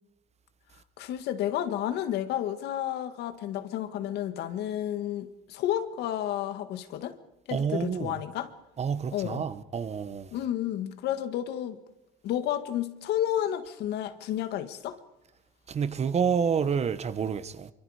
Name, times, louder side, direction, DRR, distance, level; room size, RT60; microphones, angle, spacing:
voice 1, 1.0-7.2 7.5-8.5 9.1-9.4 10.3-11.8 12.2-15.0, left 11 dB, 80° left, 1.8 m, -31 dB
voice 2, 7.5-8.2 8.8-10.3 15.7-17.7, right 6 dB, 40° right, 1.3 m, -29 dB
26.5 x 24.0 x 5.0 m
cardioid pair, 110°, 17 cm